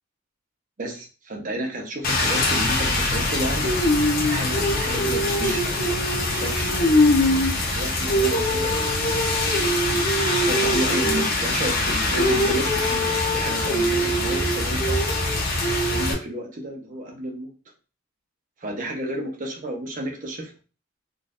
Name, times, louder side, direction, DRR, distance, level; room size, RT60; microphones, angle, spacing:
voice 1, 0.8-6.0 6.3-7.1 7.7-9.2 10.4-15.0 15.9-17.5 18.6-20.5, right 1 dB, 40° right, 1 dB, 0.9 m, -32 dB
Rain, 2.0-16.1, left 1 dB, 45° left, 0.9 m, -22 dB
3.9 x 2.6 x 2.5 m, 0.34 s
head